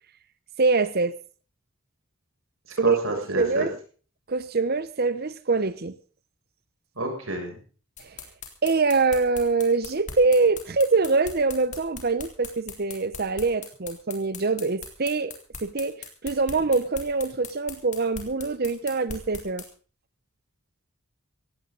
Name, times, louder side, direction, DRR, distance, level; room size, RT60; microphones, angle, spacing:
voice 1, 0.6-1.1 2.8-3.0 3.4-3.8 4.3-5.9 8.6-15.3 15.6-19.6, right 4 dB, 45° right, 15 dB, 0.9 m, -24 dB
voice 2, 2.8-3.7 7.0-7.6, right 2 dB, 70° right, 2 dB, 6.9 m, -29 dB
sound 1, 8.0-19.7, left 5 dB, 35° left, 3.6 m, -39 dB
17.0 x 16.5 x 4.0 m, 0.39 s
head